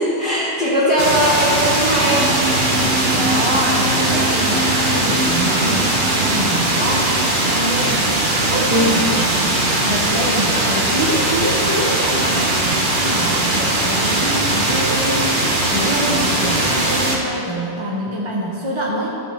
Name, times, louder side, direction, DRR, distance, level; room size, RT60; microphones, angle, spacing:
voice 1, 0.0-2.3 3.4-3.5 8.7-8.9, equal, 5° left, -9 dB, 1.9 m, -19 dB
sound 1, 1.0-17.2, right 2 dB, 50° right, 1.4 m, -19 dB
sound 2, 2.0-8.0, right 1 dB, 70° right, 1.6 m, -27 dB
voice 2, 3.1-8.1 8.4-15.4 15.7-19.2, equal, 30° right, -3 dB, 0.9 m, -25 dB
13.0 x 4.4 x 6.9 m, 2.8 s
omnidirectional pair, 1.1 m